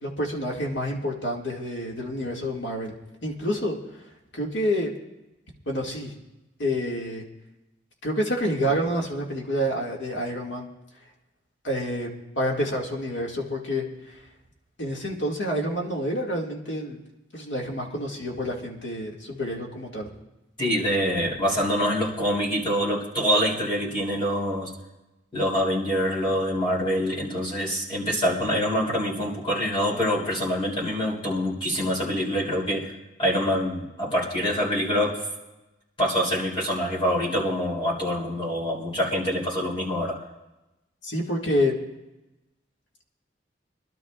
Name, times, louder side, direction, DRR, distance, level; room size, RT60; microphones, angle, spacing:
voice 1, 0.0-2.9 3.2-3.8 4.3-4.9 5.7-6.1 6.6-7.2 8.0-10.7 11.6-12.1 12.3-13.8 14.8-17.0 17.3-20.1 41.0-41.7, equal, 75° left, -1 dB, 2.2 m, -28 dB
voice 2, 20.6-24.7 25.3-32.9 33.2-35.2 36.0-40.2, equal, 30° left, -5 dB, 3.3 m, -25 dB
25.0 x 12.0 x 2.5 m, 1.0 s
head